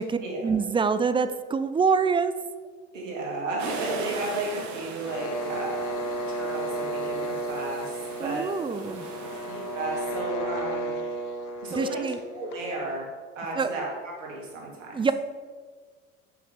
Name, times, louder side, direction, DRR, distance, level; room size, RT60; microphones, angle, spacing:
voice 1, 0.0-2.3 8.2-9.1 11.8-12.2 13.6-13.7 14.9-15.1, right 5 dB, 15° right, 11 dB, 0.4 m, -25 dB
voice 2, 2.9-8.5 9.5-10.9 11.6-12.0 12.3-13.1 13.4-15.1, right 2 dB, 85° right, -2 dB, 2.0 m, -33 dB
sound 1, 3.6-10.2, right 4 dB, 50° right, 1.3 m, -41 dB
sound 2, 5.0-12.8, right 1 dB, 55° left, 1.1 m, -33 dB
5.8 x 5.2 x 5.2 m, 1.5 s
hypercardioid pair, 70°, 37 cm